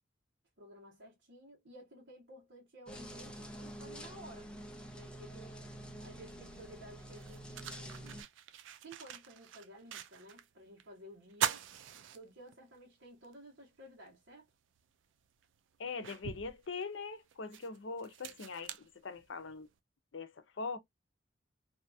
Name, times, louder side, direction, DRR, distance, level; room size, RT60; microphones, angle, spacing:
voice 1, 0.6-4.5 4.9-8.2 8.8-11.7 11.9-14.5, right 1 dB, 70° right, 1.2 m, -54 dB
sound 1, 2.9-8.2, right 1 dB, 5° left, 0.6 m, -48 dB
sound 2, 6.5-6.6 7.1-10.5 10.8-10.9 11.3-12.8 13.2-13.3 14.8-14.9 15.4-19.6, right 9 dB, 85° right, 0.4 m, -42 dB
voice 2, 15.8-19.7 20.1-20.8, left 4 dB, 80° left, 0.6 m, -42 dB
2.7 x 2.3 x 2.6 m
head